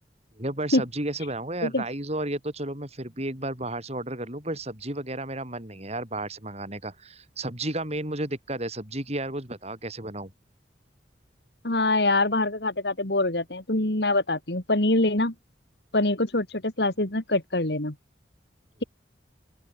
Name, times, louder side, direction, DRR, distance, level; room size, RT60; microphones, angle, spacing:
voice 1, 0.4-10.3, right 1 dB, 35° right, 7.5 m, -32 dB
voice 2, 11.6-15.3 15.9-17.9, left 2 dB, 65° left, 2.8 m, -24 dB
open air
head